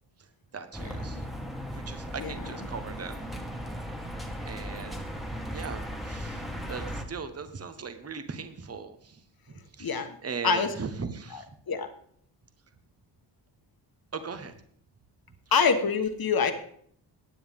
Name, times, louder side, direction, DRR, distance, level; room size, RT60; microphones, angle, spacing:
voice 1, 0.5-1.2 1.7-3.3 4.0-4.1 4.4-5.1 5.5-9.2 9.5-11.5 14.1-14.6, right 5 dB, 30° right, 9 dB, 1.1 m, -39 dB
sound 1, 0.7-7.0, equal, ahead, 1.6 m, -37 dB
voice 2, 11.3-11.9 15.5-16.5, left 5 dB, 50° left, 7 dB, 1.5 m, -25 dB
16.0 x 9.3 x 3.6 m, 0.64 s
cardioid pair, 90°, 46 cm